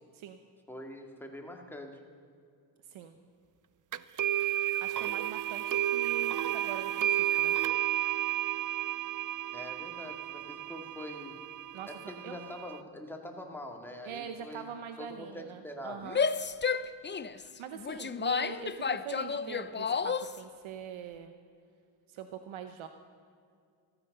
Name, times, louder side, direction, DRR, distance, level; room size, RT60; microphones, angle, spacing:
voice 1, 0.7-2.0 9.5-11.4 11.9-14.7 15.0-16.1, left 1 dB, 5° left, 2 dB, 2.3 m, -44 dB
voice 2, 2.8-3.2 4.4-7.6 11.7-11.9 12.2-12.4 14.0-16.2 17.4-21.3 22.1-22.9, right 8 dB, 90° right, 8 dB, 0.9 m, -43 dB
sound 1, 3.9-12.8, right 13 dB, 45° right, 0.5 m, -32 dB
Female speech woman speaking / Yell, 16.0-20.4, left 5 dB, 25° left, 0.5 m, -31 dB
14.5 x 14.0 x 6.7 m, 2.3 s
cardioid pair, 90°, 46 cm